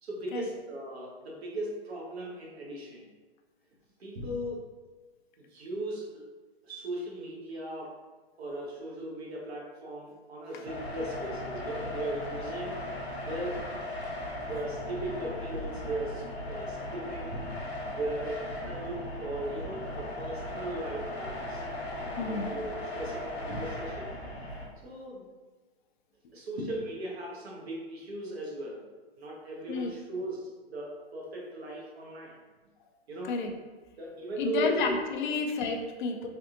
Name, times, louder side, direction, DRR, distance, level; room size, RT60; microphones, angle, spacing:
voice 1, 0.0-3.1 4.0-4.7 5.4-6.2 6.6-7.9 8.4-12.9 13.2-13.6 14.4-17.4 17.9-21.6 22.2-24.2 24.8-25.3 26.3-28.8 29.2-32.4 33.1-33.4 34.0-34.9, right 1 dB, 75° right, -3 dB, 1.0 m, -37 dB
sound 1, 10.6-24.6, left 1 dB, 80° left, 0.9 m, -37 dB
voice 2, 22.2-22.5 29.7-29.9 33.2-33.5 34.4-36.3, left 4 dB, 50° left, 3 dB, 0.5 m, -31 dB
3.4 x 2.4 x 2.7 m, 1.3 s
hypercardioid pair, 125°, 32 cm